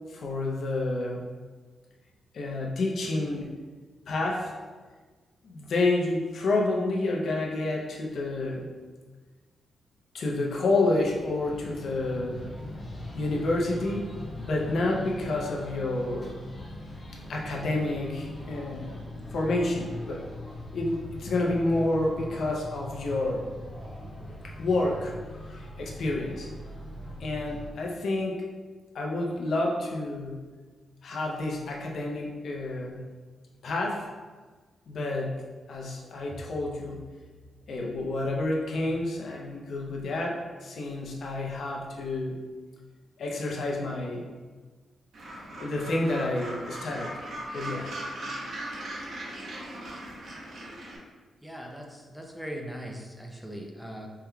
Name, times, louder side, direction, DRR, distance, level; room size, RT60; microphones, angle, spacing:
voice 1, 0.1-1.2 2.3-3.5 4.1-4.5 5.4-8.7 10.1-12.5 13.1-16.3 17.3-19.0 19.3-20.2 20.7-23.5 24.4-25.1 25.5-26.5 27.2-28.5 28.9-30.5 31.0-33.1 33.6-34.1 34.9-37.1 37.7-42.4 43.2-44.2 45.6-47.2 47.5-47.9, left 2 dB, 70° left, -1 dB, 0.6 m, -29 dB
sound 1, 10.9-27.7, left 1 dB, 25° left, 0.9 m, -40 dB
Gull seagull, 45.1-51.0, right 1 dB, 65° right, 0.8 m, -38 dB
voice 2, 51.4-54.1, equal, 5° right, 1 dB, 0.5 m, -40 dB
4.5 x 3.5 x 2.3 m, 1.4 s
cardioid pair, 115°, 0 cm